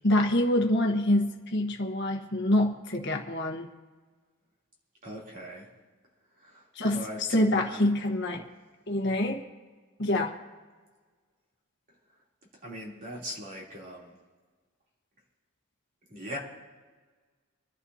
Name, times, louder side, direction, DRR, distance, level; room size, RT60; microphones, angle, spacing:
voice 1, 0.0-3.7 6.7-8.4 8.9-9.4 10.0-10.3, left 1 dB, 55° left, 1 dB, 1.3 m, -26 dB
voice 2, 5.0-5.7 6.4-6.7 6.9-7.2 7.7-7.9 12.6-14.1 16.1-16.4, equal, 40° right, -4 dB, 3.2 m, -40 dB
26.5 x 11.0 x 2.8 m, 1.4 s
head